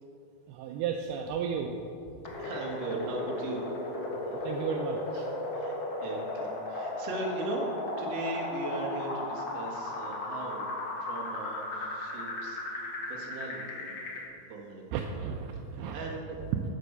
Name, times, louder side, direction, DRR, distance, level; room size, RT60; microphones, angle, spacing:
voice 1, 0.5-1.8 4.1-5.3 14.9-16.0, right 7 dB, 85° right, 3 dB, 2.3 m, -34 dB
sound 1, 2.2-14.2, left 2 dB, 75° left, 1.1 m, -36 dB
voice 2, 2.4-3.6 4.3-4.6 5.5-7.7 8.0-10.7 11.0-14.2 14.5-15.2 15.7-16.4, right 2 dB, 50° right, -1 dB, 2.0 m, -39 dB
11.5 x 7.4 x 6.6 m, 2.6 s
omnidirectional pair, 5.1 m